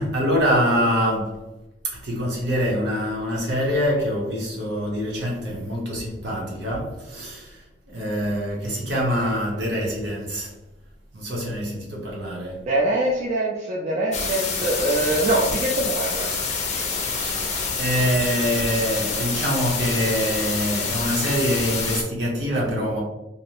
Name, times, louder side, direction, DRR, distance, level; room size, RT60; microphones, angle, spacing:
voice 1, 0.0-1.4 1.8-10.5 11.1-12.7 17.2-23.0, equal, 65° right, 0.8 m, -25 dB
voice 2, 12.7-16.3, right 1 dB, 35° right, 0.3 m, -23 dB
pizza pies, 14.1-22.0, left 4 dB, 35° left, 0.5 m, -27 dB
2.6 x 2.0 x 2.8 m
head